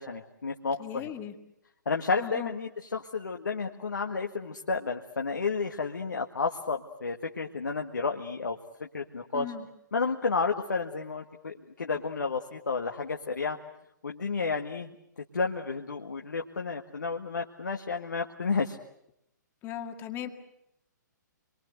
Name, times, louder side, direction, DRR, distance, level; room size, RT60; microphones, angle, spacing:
voice 1, 0.0-1.1 1.9-9.5 9.9-13.6 14.0-18.8, left 4 dB, 70° left, 3 dB, 1.7 m, -31 dB
voice 2, 0.8-1.3 2.2-2.5 9.3-9.6 19.6-20.3, left 10 dB, 20° left, 6 dB, 2.0 m, -37 dB
27.5 x 23.0 x 8.0 m, 0.80 s
figure-of-eight pair, 120°, 10 cm